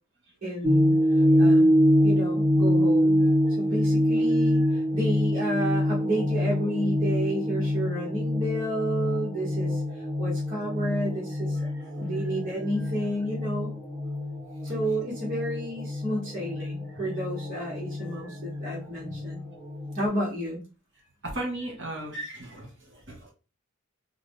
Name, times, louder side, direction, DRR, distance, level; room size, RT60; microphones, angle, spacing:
voice 1, 0.4-1.7 2.0-3.2 3.6-11.6 12.0-13.8 14.6-19.5 20.0-20.6, right 1 dB, 45° right, -6 dB, 1.0 m, -31 dB
sound 1, 0.6-20.1, equal, 25° right, 1.4 m, -25 dB
voice 2, 21.2-23.3, right 1 dB, 60° right, 0 dB, 1.5 m, -37 dB
3.6 x 2.0 x 3.4 m, 0.33 s
head